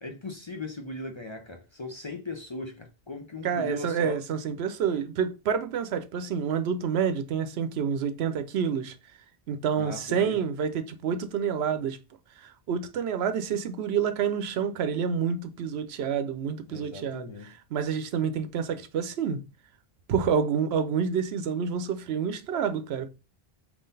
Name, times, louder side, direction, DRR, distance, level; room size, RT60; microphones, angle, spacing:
voice 1, 0.0-4.2 9.8-10.4 16.7-17.5, left 2 dB, 35° left, 0.5 m, -38 dB
voice 2, 3.4-8.9 9.5-12.0 12.4-17.3 17.7-19.4 20.1-23.1, right 7 dB, 85° right, 0.9 m, -28 dB
3.7 x 2.9 x 3.9 m
omnidirectional pair, 1.0 m